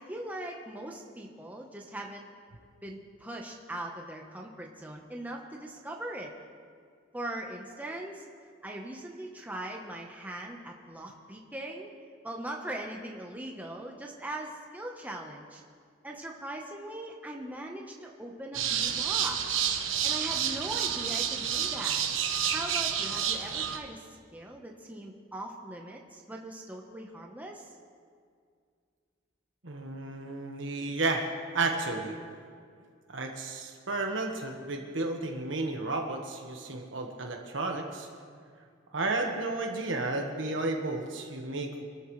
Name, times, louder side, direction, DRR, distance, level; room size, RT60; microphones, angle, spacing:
voice 1, 0.0-2.3 2.8-6.3 7.1-8.3 8.6-11.9 12.2-15.6 16.0-19.6 20.0-22.1 22.5-24.1 24.3-27.7, right 1 dB, 10° right, 0 dB, 1.0 m, -40 dB
sound 1, 18.5-23.8, right 8 dB, 85° right, 1.2 m, -29 dB
voice 2, 29.6-31.3 31.5-32.2 33.1-38.1 38.9-41.9, right 2 dB, 70° right, 2 dB, 1.5 m, -32 dB
25.5 x 13.0 x 3.2 m, 2.1 s
head